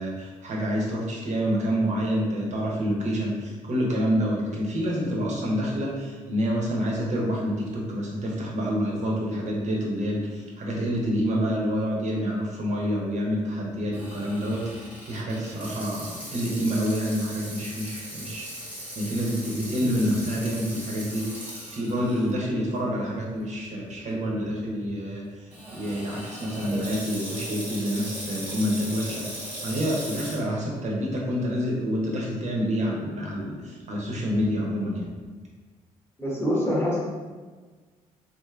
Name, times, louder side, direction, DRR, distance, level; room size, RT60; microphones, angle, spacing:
voice 1, 0.0-18.5 18.9-25.3 25.7-35.1, equal, 45° right, -2 dB, 0.9 m, -28 dB
Water tap faucet / Sink (filling or washing), 13.9-22.3 22.8-22.9 23.7-23.9 25.5-30.4, equal, 10° right, 1.1 m, -38 dB
voice 2, 36.2-37.0, equal, 15° left, -5 dB, 1.2 m, -25 dB
3.1 x 2.6 x 2.4 m, 1.4 s
hypercardioid pair, 45°, 17 cm